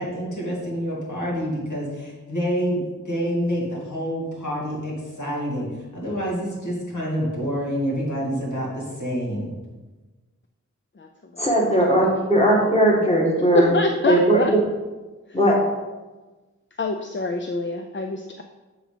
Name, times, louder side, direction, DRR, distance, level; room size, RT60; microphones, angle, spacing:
voice 1, 0.0-2.8 3.1-5.7 5.9-9.5, equal, 70° left, -4 dB, 2.2 m, -27 dB
voice 2, 11.4-13.7 14.1-14.4 15.3-15.6, right 1 dB, 20° left, -3 dB, 2.0 m, -18 dB
voice 3, 13.5-14.5 16.8-18.4, left 3 dB, 40° left, 5 dB, 0.5 m, -26 dB
7.7 x 3.8 x 5.0 m, 1.2 s
wide cardioid pair, 40°, 31 cm